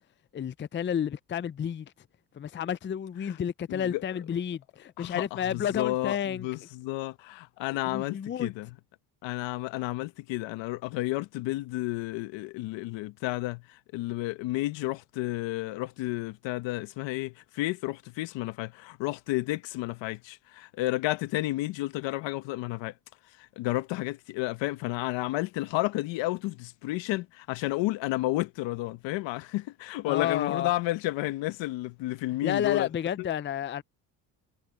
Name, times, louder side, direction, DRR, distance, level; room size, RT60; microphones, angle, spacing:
voice 1, 0.3-1.9 2.4-6.5 7.8-8.5 30.1-30.7 32.4-33.8, left 9 dB, 25° left, 0.5 m, -31 dB
voice 2, 3.7-4.0 5.0-8.7 9.2-22.9 23.4-32.9, left 18 dB, 80° left, 1.2 m, -31 dB
supercardioid pair, 75°, 44 cm